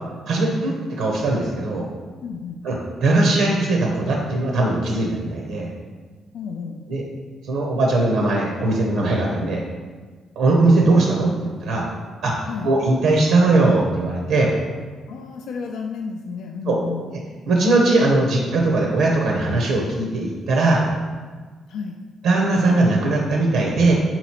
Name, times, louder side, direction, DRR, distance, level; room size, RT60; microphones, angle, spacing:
voice 1, 0.3-1.9 2.6-5.7 6.9-7.0 7.5-9.6 10.4-11.9 12.2-14.5 16.7-16.8 17.5-20.9 22.2-23.9, right 2 dB, 80° right, -1 dB, 0.6 m, -19 dB
voice 2, 2.2-2.7 6.3-6.8 12.5-12.8 15.1-17.0 21.7-22.0, left 5 dB, 75° left, 2 dB, 0.3 m, -31 dB
3.8 x 3.0 x 4.3 m, 1.4 s
cardioid pair, 90°, 0 cm